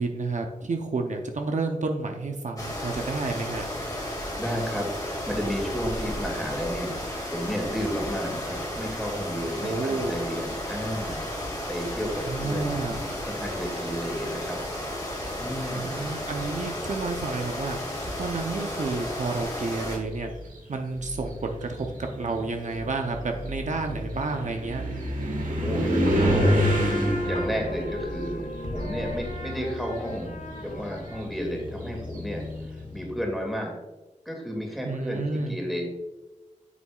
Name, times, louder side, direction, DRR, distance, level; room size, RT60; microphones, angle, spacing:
voice 1, 0.0-3.7 9.6-10.2 12.3-13.0 15.7-20.3 20.7-24.8 34.8-35.6, right 3 dB, 65° right, 3 dB, 0.7 m, -30 dB
sound 1, 2.6-20.0, left 1 dB, 25° left, 2.2 m, -33 dB
voice 2, 4.4-7.0 7.2-11.3 11.7-14.6 15.4-16.0 25.6-28.4 28.7-33.8 34.3-35.9, equal, ahead, 0 dB, 2.3 m, -32 dB
sound 2, 17.5-18.1 19.1-19.2 19.7-29.6 29.9-32.6, equal, 90° right, 1.6 m, -29 dB
sound 3, 26.0-33.3, left 1 dB, 65° left, 1.4 m, -34 dB
8.4 x 7.2 x 2.4 m, 1.1 s
wide cardioid pair, 95°, 13 cm